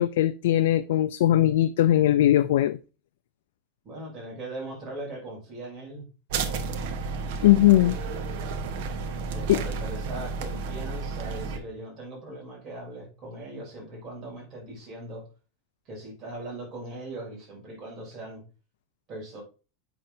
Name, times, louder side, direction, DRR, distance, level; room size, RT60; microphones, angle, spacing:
voice 1, 0.0-2.8 7.4-8.0 9.5-9.6, left 13 dB, 85° left, 0.3 m, -20 dB
voice 2, 3.8-6.1 7.2-7.8 9.3-15.2 15.8-18.4 19.1-19.4, right 2 dB, 30° right, 3.4 m, -40 dB
sound 1, 6.3-11.6, right 4 dB, 65° right, 1.1 m, -32 dB
7.6 x 6.0 x 2.7 m
supercardioid pair, 150°, 0 cm